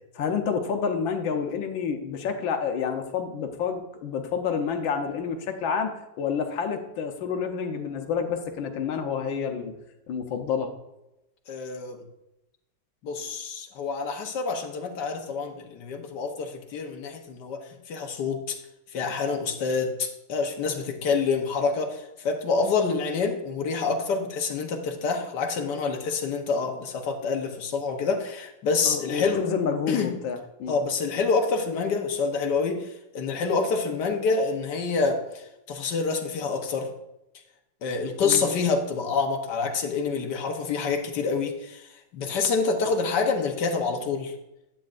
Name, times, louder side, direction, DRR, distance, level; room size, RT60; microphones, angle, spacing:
voice 1, 0.1-5.9 6.2-9.7 10.1-10.7 28.8-30.7 38.2-38.5, left 6 dB, 85° left, 5 dB, 1.7 m, -29 dB
voice 2, 11.5-12.0 13.0-18.6 18.9-29.4 29.9-30.1 30.7-36.9 37.8-44.3, left 4 dB, 65° left, 4 dB, 1.6 m, -27 dB
10.5 x 8.5 x 2.5 m, 0.91 s
omnidirectional pair, 2.1 m